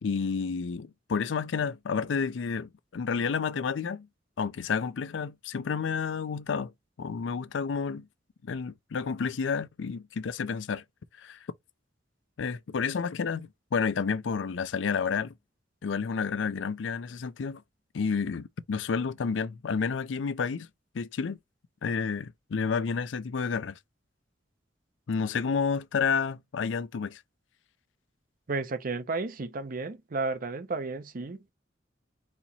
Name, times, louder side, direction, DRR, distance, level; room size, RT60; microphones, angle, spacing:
voice 1, 0.0-4.1 4.4-6.7 7.0-8.1 8.4-10.8 11.2-11.4 12.4-15.3 15.8-17.6 17.9-20.7 20.9-21.4 21.8-23.8 25.1-27.2, left 5 dB, 80° left, 0.4 m, -30 dB
voice 2, 28.5-31.5, right 3 dB, 50° right, 0.6 m, -33 dB
4.3 x 2.8 x 4.1 m
head